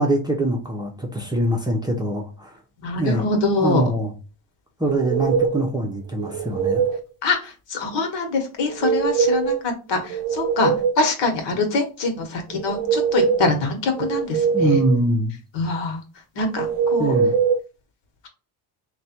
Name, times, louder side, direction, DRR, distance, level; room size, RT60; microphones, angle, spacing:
voice 1, 0.0-2.5 3.0-3.3 3.6-4.1 4.8-6.8 14.5-15.4 17.0-17.3, right 1 dB, 10° right, 0 dB, 0.7 m, -23 dB
voice 2, 2.8-3.8 7.2-14.8 15.5-16.0 16.4-17.2, left 3 dB, 60° left, 4 dB, 1.3 m, -24 dB
sound 1, 4.8-5.7 6.2-7.0 8.6-9.6 10.0-11.1 12.5-13.5 14.0-15.0 16.6-17.6, right 6 dB, 70° right, 0.7 m, -22 dB
3.2 x 2.4 x 4.3 m, 0.34 s
cardioid pair, 105°, 49 cm